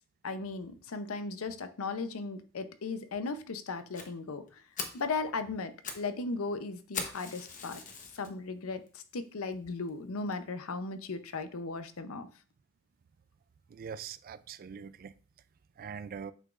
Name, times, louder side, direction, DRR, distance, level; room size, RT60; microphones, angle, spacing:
voice 1, 0.2-4.4 4.9-7.8 8.1-12.3, left 3 dB, 80° left, 0.6 m, -37 dB
Fire, 3.9-4.1 4.5-4.6 4.8-5.1 5.6-6.1 6.3-6.4 6.9-8.3 8.9-9.0 9.5-9.6 9.9-10.0 10.3-10.4, left 5 dB, 40° left, 1.0 m, -40 dB
voice 2, 13.7-15.1 15.8-16.3, right 6 dB, 45° right, 0.3 m, -42 dB
7.9 x 6.0 x 2.5 m
head